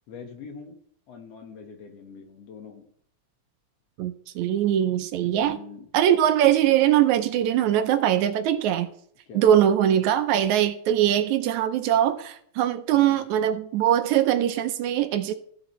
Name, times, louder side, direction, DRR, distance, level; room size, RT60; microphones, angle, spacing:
voice 1, 0.1-0.8 1.1-2.9 5.2-5.9 9.3-9.5 12.9-13.3, left 5 dB, 60° left, 2.2 m, -43 dB
voice 2, 4.0-5.6 5.9-8.9 9.3-15.3, right 11 dB, 80° right, 1.9 m, -22 dB
14.5 x 7.6 x 3.1 m
omnidirectional pair, 3.5 m